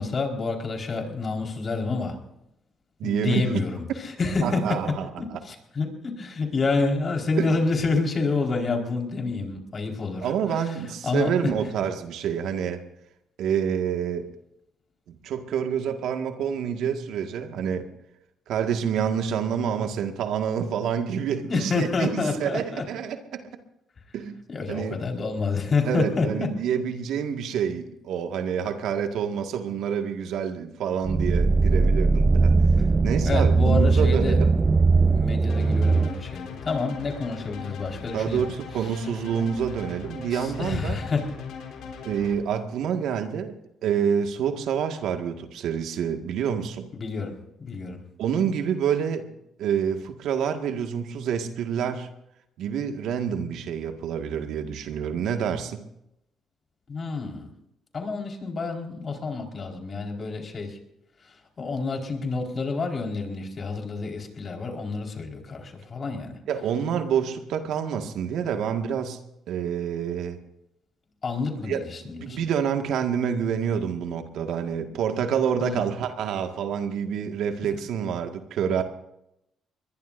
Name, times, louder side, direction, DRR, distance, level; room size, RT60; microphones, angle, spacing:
voice 1, 0.0-2.2 3.0-10.3 11.0-11.5 21.4-22.9 24.5-26.5 33.3-34.4 35.1-38.5 40.3-41.2 46.9-48.0 56.9-57.5 57.9-60.8 61.6-66.4 71.2-72.5 75.6-75.8, left 3 dB, 45° left, 2 dB, 4.6 m, -28 dB
voice 2, 3.0-3.4 4.4-5.2 7.4-7.5 10.2-12.8 13.4-14.3 15.1-17.9 18.5-23.4 24.1-24.4 24.7-25.0 25.8-32.5 33.0-34.5 38.1-41.0 42.0-43.5 43.8-46.9 48.2-49.3 49.6-52.1 52.6-55.8 66.5-69.2 69.5-70.4 71.6-78.8, right 8 dB, 75° right, 6 dB, 1.8 m, -27 dB
sound 1, 31.0-36.1, right 3 dB, 30° right, 0.9 m, -20 dB
sound 2, 35.5-42.4, left 6 dB, 75° left, 3.7 m, -40 dB
22.0 x 21.5 x 2.7 m, 0.81 s
supercardioid pair, 60°, 0 cm